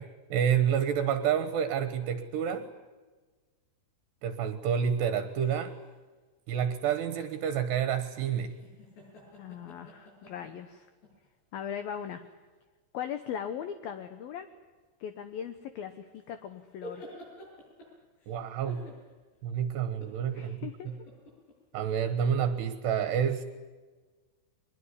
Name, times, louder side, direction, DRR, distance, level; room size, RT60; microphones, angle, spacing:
voice 1, 0.0-2.7 4.2-5.7 6.5-8.5 18.3-18.8 19.4-20.9 21.7-23.4, right 8 dB, 65° right, 11 dB, 3.1 m, -29 dB
sound 1, 5.3-5.9 8.5-11.3 12.0-12.1 15.9-18.4 18.7-19.4 19.8-20.3 20.9-21.5, left 1 dB, 55° left, 9.8 m, -49 dB
voice 2, 9.4-10.9 11.5-12.2 12.9-14.5 15.0-17.0 20.3-21.0, left 8 dB, 75° left, 9 dB, 2.1 m, -39 dB
23.5 x 21.5 x 9.8 m, 1.3 s
omnidirectional pair, 5.9 m